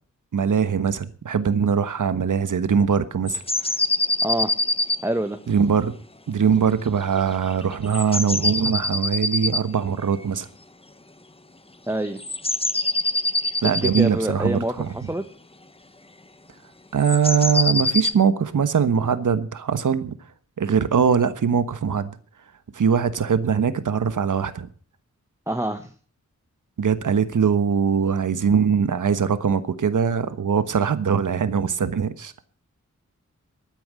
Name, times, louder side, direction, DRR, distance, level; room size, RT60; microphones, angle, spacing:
voice 1, 0.3-3.4 5.5-5.9 6.3-10.5 13.6-14.9 16.9-20.1 20.6-22.1 22.7-24.7 26.8-32.3, right 7 dB, 85° right, 1.3 m, -21 dB
sound 1, 3.3-5.0 7.5-9.6 10.2-10.3 12.2-14.1 17.0-18.1, left 2 dB, 20° left, 1.0 m, -24 dB
voice 2, 5.0-5.4 11.9-12.2 13.6-15.2 25.5-25.9, right 1 dB, 10° right, 1.4 m, -26 dB
13.5 x 9.3 x 7.6 m
cardioid pair, 65°, 30 cm